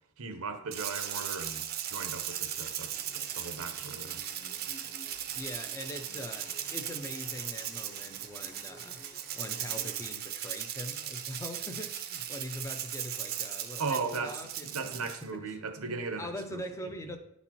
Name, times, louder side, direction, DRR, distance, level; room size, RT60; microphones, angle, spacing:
voice 1, 0.2-4.2 13.8-16.6, right 4 dB, 90° right, 0.8 m, -37 dB
Rattle (instrument), 0.7-15.2, right 10 dB, 45° right, 0.5 m, -38 dB
sound 1, 2.8-10.2, equal, 50° left, 1.2 m, -55 dB
voice 2, 5.3-9.0 9.3-17.2, left 1 dB, 15° left, 0.4 m, -42 dB
9.6 x 4.1 x 2.9 m
head